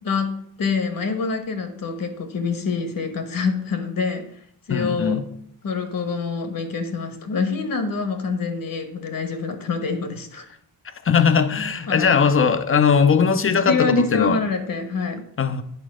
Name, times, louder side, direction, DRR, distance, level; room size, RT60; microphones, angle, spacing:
voice 1, 0.0-4.3 4.7-5.2 5.6-10.4 11.9-12.2 13.7-15.2, left 4 dB, 55° left, 1.3 m, -26 dB
voice 2, 4.7-5.3 11.0-14.4 15.4-15.6, left 6 dB, 35° left, 0.7 m, -19 dB
9.2 x 4.0 x 6.4 m
cardioid pair, 110°, 40 cm